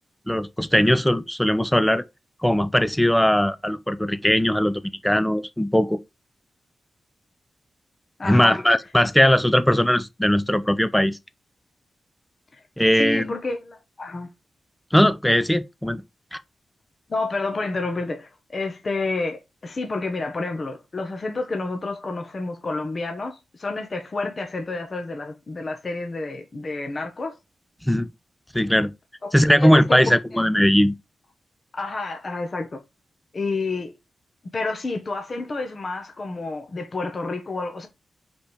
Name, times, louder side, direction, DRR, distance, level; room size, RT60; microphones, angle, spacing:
voice 1, 0.3-2.0 2.4-6.0 8.2-11.2 12.8-13.2 14.9-16.0 16.3-16.4 27.8-28.1 28.5-28.9 29.3-31.0, equal, 5° left, 0.6 m, -19 dB
voice 2, 8.2-8.6 12.5-12.6 12.9-14.3 17.1-27.3 29.6-30.4 31.7-32.8 33.3-33.9 34.5-37.9, left 3 dB, 35° left, 1.2 m, -29 dB
5.1 x 4.5 x 4.9 m
wide cardioid pair, 130°, 0 cm